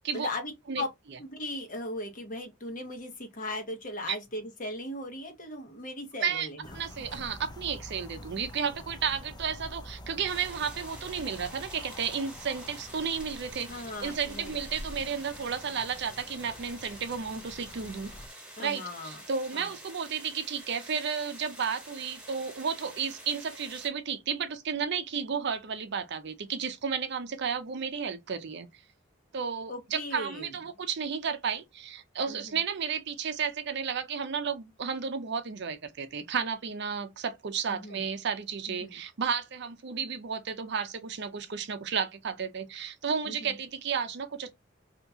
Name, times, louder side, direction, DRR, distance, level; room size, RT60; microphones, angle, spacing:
voice 1, 0.1-0.5 0.8-0.9 1.2-6.8 13.7-14.6 18.6-19.2 19.5-19.7 29.7-30.5 32.3-32.6 37.7-38.0 38.7-39.0 43.3-43.6, left 1 dB, 45° left, 1.1 m, -38 dB
sound 1, 6.6-18.3, left 1 dB, 20° left, 0.5 m, -46 dB
voice 2, 6.7-18.1 18.6-28.7 29.3-44.5, right 6 dB, 60° right, 0.6 m, -33 dB
sound 2, 10.3-23.9, right 1 dB, 5° right, 1.2 m, -48 dB
2.8 x 2.8 x 3.5 m
head